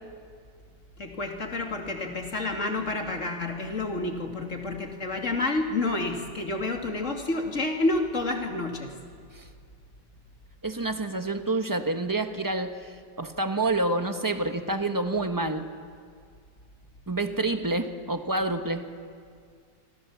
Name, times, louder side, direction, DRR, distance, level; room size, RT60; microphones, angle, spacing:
voice 1, 1.0-8.9, left 2 dB, 40° left, 2 dB, 2.9 m, -29 dB
voice 2, 10.6-15.7 17.1-18.9, right 2 dB, 15° right, 7 dB, 1.0 m, -28 dB
27.0 x 25.0 x 7.3 m, 2.1 s
omnidirectional pair, 2.0 m